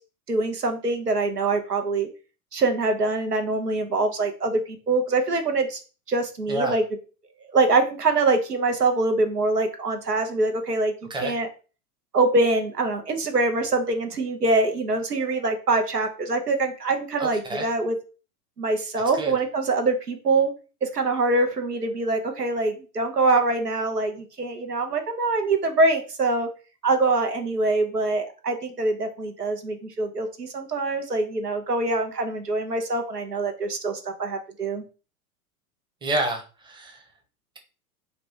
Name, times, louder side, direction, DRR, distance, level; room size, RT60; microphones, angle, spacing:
voice 1, 0.3-2.1 2.5-5.8 6.1-6.8 7.5-10.9 11.2-11.5 12.1-17.9 18.6-20.5 20.8-26.5 26.8-34.8, right 3 dB, 85° right, 5 dB, 0.8 m, -24 dB
voice 2, 17.2-17.7 19.1-19.4 36.0-37.0, right 1 dB, 10° right, 4 dB, 0.7 m, -29 dB
3.9 x 2.2 x 4.5 m, 0.34 s
figure-of-eight pair, 90°, 46 cm